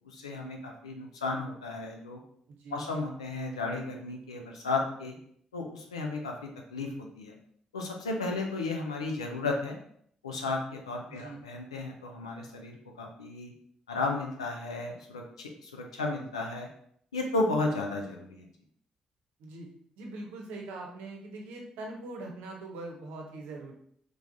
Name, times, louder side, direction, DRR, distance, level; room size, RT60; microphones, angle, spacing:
voice 1, 0.0-2.2 2.7-5.2 5.5-7.3 7.7-9.8 10.2-13.5 13.9-16.7 17.1-18.5, left 3 dB, 90° left, 1 dB, 0.4 m, -34 dB
voice 2, 11.1-11.4 19.4-19.7 20.0-23.7, right 2 dB, 70° right, 1 dB, 0.7 m, -42 dB
3.5 x 3.3 x 2.6 m, 0.64 s
figure-of-eight pair, 40°, 3 cm